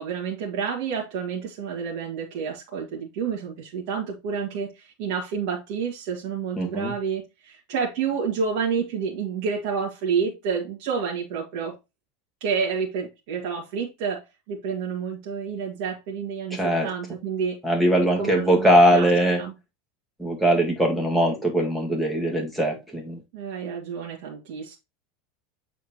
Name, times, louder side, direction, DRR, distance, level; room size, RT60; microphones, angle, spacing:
voice 1, 0.0-11.8 12.4-17.6 18.2-19.1 19.4-19.5 23.3-24.8, right 6 dB, 60° right, 2.0 m, -29 dB
voice 2, 6.6-6.9 16.5-16.9 17.6-19.4 20.2-23.2, equal, 5° right, 1.8 m, -21 dB
8.0 x 4.2 x 2.9 m
supercardioid pair, 140°, 0 cm